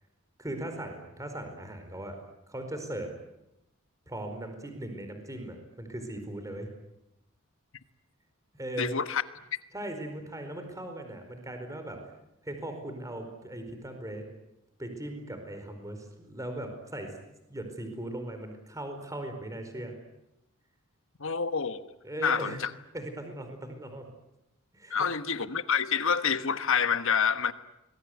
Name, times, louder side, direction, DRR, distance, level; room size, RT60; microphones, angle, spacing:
voice 1, 0.4-2.2 2.5-3.1 4.1-6.7 8.5-8.9 9.7-12.0 12.4-14.3 14.8-17.1 17.5-20.0 22.0-22.6 22.9-24.1 24.7-25.0, right 1 dB, 15° right, 4.6 m, -38 dB
voice 2, 8.8-9.2 21.2-21.9 22.2-22.7 24.9-27.5, left 6 dB, 65° left, 1.3 m, -27 dB
25.5 x 21.5 x 9.6 m
head